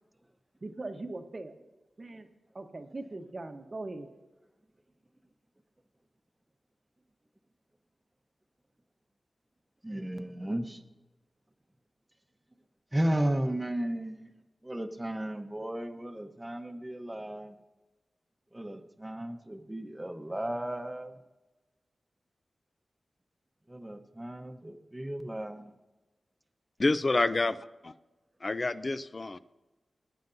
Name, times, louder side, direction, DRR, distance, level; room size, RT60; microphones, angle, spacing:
voice 1, 0.6-1.6 2.0-2.3 2.5-4.1, right 2 dB, 40° right, 6 dB, 1.0 m, -40 dB
voice 2, 9.8-10.8 12.9-14.3 14.6-17.6 18.5-21.2 23.7-25.7, right 1 dB, 15° right, 7 dB, 0.9 m, -34 dB
voice 3, 26.8-27.9 28.4-29.4, left 2 dB, 40° left, 13 dB, 0.5 m, -28 dB
20.0 x 9.4 x 2.7 m, 1.1 s
wide cardioid pair, 70°, 0 cm